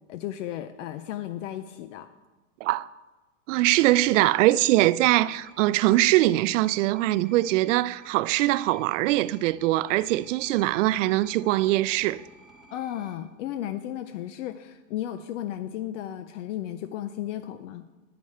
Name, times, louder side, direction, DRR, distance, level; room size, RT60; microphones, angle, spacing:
voice 1, 0.1-2.1 12.7-17.8, left 12 dB, 70° left, 0.6 m, -34 dB
voice 2, 3.5-12.2, right 16 dB, 70° right, 0.5 m, -22 dB
sound 1, 5.3-13.2, right 1 dB, ahead, 1.1 m, -53 dB
10.5 x 9.2 x 4.3 m
supercardioid pair, 145°, 39 cm